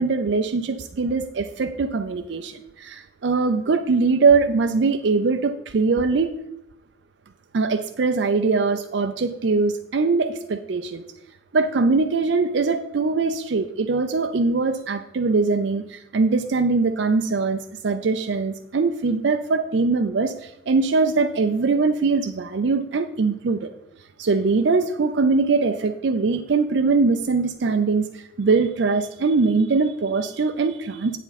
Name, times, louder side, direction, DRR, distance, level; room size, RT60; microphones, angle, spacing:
voice 1, 0.0-6.3 7.5-11.0 11.5-23.7 24.2-31.2, right 4 dB, 60° right, 7 dB, 0.5 m, -22 dB
8.8 x 7.2 x 4.1 m, 0.83 s
head